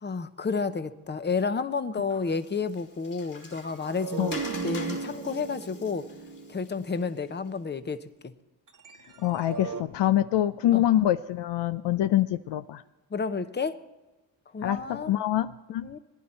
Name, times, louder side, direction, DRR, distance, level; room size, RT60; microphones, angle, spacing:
voice 1, 0.0-6.1 6.5-8.3 10.7-10.8 13.1-13.8 14.5-15.1 15.8-16.0, left 5 dB, 20° left, 12 dB, 0.8 m, -31 dB
Water, 2.1-7.5, left 3 dB, 40° left, 2.7 m, -45 dB
sound 1, 3.4-7.7 8.7-9.8, right 5 dB, 40° right, 1.3 m, -37 dB
voice 2, 9.2-12.8 14.6-15.9, left 12 dB, 60° left, 11 dB, 0.6 m, -25 dB
19.0 x 10.5 x 4.4 m, 1.1 s
cardioid pair, 65°, 47 cm